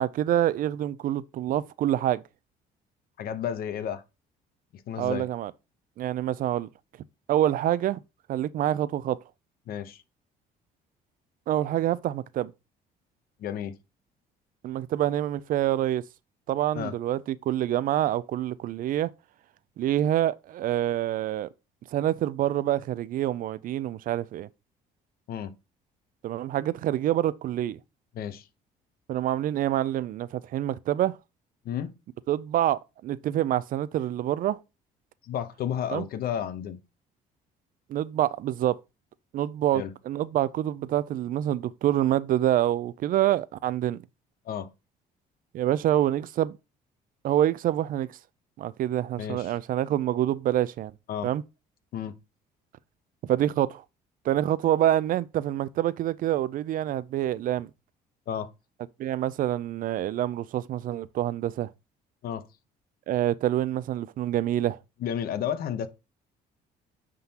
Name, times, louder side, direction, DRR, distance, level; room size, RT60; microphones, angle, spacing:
voice 1, 0.0-2.2 5.0-5.5 6.0-6.7 7.3-8.0 8.3-9.2 11.5-12.5 14.6-16.0 16.5-19.1 19.8-21.5 21.9-24.5 26.2-27.8 29.1-31.2 32.3-34.6 35.9-36.0 37.9-38.8 39.3-44.0 45.5-46.6 47.2-48.2 48.6-50.9 51.2-51.4 53.3-53.8 54.2-57.7 59.0-61.7 63.1-64.8, right 12 dB, 55° right, 0.4 m, -26 dB
voice 2, 3.2-4.0 4.9-5.3 9.7-10.0 13.4-13.7 16.7-16.9 25.3-25.5 28.1-28.5 31.6-31.9 35.2-36.8 39.7-39.9 44.5-44.7 49.2-49.5 51.1-51.3 51.9-52.2 58.3-58.5 62.2-62.5 65.0-65.9, left 9 dB, 65° left, 0.8 m, -32 dB
9.5 x 3.7 x 2.9 m
cardioid pair, 110°, 17 cm